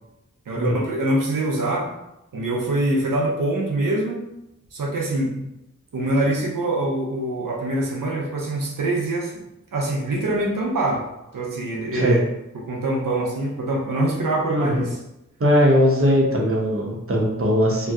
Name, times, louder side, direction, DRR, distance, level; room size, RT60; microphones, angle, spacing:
voice 1, 0.5-1.9 2.3-4.2 4.7-5.5 5.9-9.4 9.7-11.0 11.3-12.2 12.7-15.0, right 2 dB, 90° right, -2 dB, 0.6 m, -24 dB
voice 2, 14.5-14.9 15.4-17.9, equal, 45° right, -2 dB, 0.8 m, -19 dB
2.7 x 2.2 x 3.5 m, 0.87 s
wide cardioid pair, 55°, 32 cm